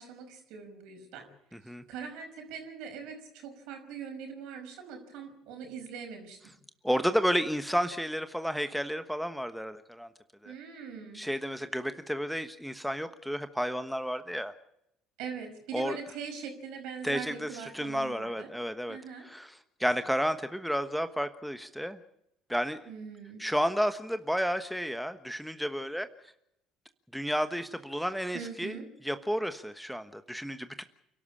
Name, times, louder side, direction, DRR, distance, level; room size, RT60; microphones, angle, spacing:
voice 1, 0.0-6.4 10.4-11.2 15.2-18.5 18.9-19.3 22.9-23.4 28.3-28.9, right 6 dB, 70° right, 5 dB, 5.4 m, -42 dB
voice 2, 6.8-10.1 10.4-10.5 11.1-14.5 15.7-16.0 17.0-19.0 19.2-19.5 19.8-22.0 22.5-22.8 23.4-26.1 27.1-28.8 29.0-30.8, equal, ahead, 10 dB, 1.2 m, -31 dB
29.0 x 12.5 x 8.5 m, 0.80 s
hypercardioid pair, 60°, 0 cm